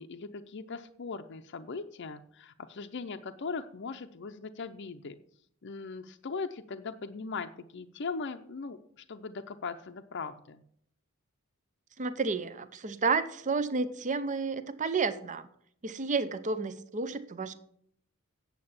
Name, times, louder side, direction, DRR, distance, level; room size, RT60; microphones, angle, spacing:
voice 1, 0.0-5.2 5.6-10.6, left 4 dB, 55° left, 7 dB, 0.6 m, -39 dB
voice 2, 12.0-15.5 15.8-17.5, right 4 dB, 35° right, 12 dB, 0.6 m, -31 dB
8.7 x 7.6 x 7.1 m, 0.66 s
head